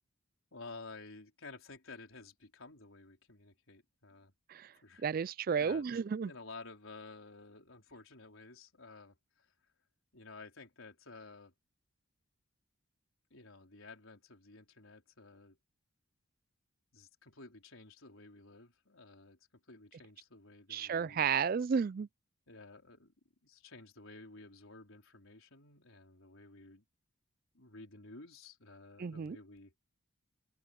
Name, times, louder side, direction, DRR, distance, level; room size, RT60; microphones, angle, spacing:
voice 1, 0.5-4.3 4.8-5.0 5.6-5.8 6.2-9.5 10.1-11.5 13.3-15.6 16.9-21.2 22.5-23.1 23.4-26.8 27.5-29.7, left 3 dB, 75° left, 4.4 m, -53 dB
voice 2, 5.0-6.3 20.7-22.1 29.0-29.4, right 6 dB, 45° right, 0.3 m, -32 dB
head